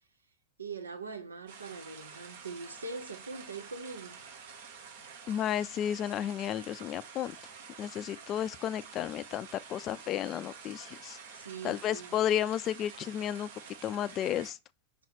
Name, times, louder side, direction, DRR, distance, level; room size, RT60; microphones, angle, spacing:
voice 1, 0.6-4.2 11.3-12.2, right 4 dB, 75° right, 0.7 m, -42 dB
sound 1, 1.5-14.5, right 6 dB, 60° right, 1.4 m, -49 dB
voice 2, 5.3-7.3 7.8-11.2 11.6-13.5 13.8-14.6, left 10 dB, 30° left, 0.4 m, -32 dB
5.7 x 4.2 x 4.2 m
figure-of-eight pair, 90°, 0 cm